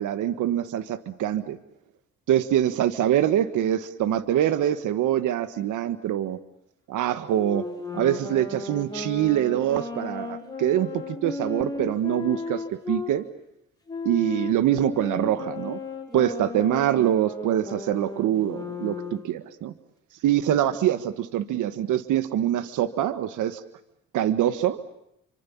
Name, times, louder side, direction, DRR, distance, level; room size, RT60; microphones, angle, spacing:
voice 1, 0.0-1.6 2.3-6.4 6.9-7.7 7.9-13.3 14.1-15.8 16.1-19.7 20.2-23.6 24.1-24.8, right 11 dB, 80° right, 12 dB, 1.6 m, -24 dB
Wind instrument woodwind instrument, 7.3-13.1 13.9-19.3, left 3 dB, 15° left, 7.9 m, -35 dB
28.5 x 26.0 x 7.2 m, 0.82 s
cardioid pair, 90°, 30 cm